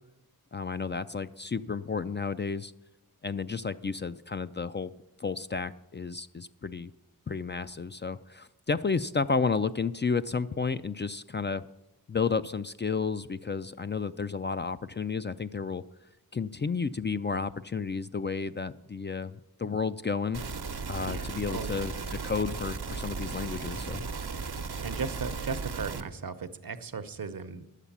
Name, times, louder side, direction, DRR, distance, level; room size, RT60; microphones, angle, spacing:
voice 1, 0.5-2.7 3.2-4.9 5.2-6.9 7.3-11.7 12.1-15.8 16.3-20.4 20.9-24.0, left 5 dB, 30° left, 12 dB, 0.4 m, -32 dB
sound 1, 20.3-26.0, right 4 dB, 90° right, 0.9 m, -36 dB
voice 2, 21.1-21.8 24.8-27.7, right 5 dB, 65° right, 11 dB, 0.8 m, -36 dB
11.0 x 8.3 x 7.2 m, 0.99 s
wide cardioid pair, 60°, 37 cm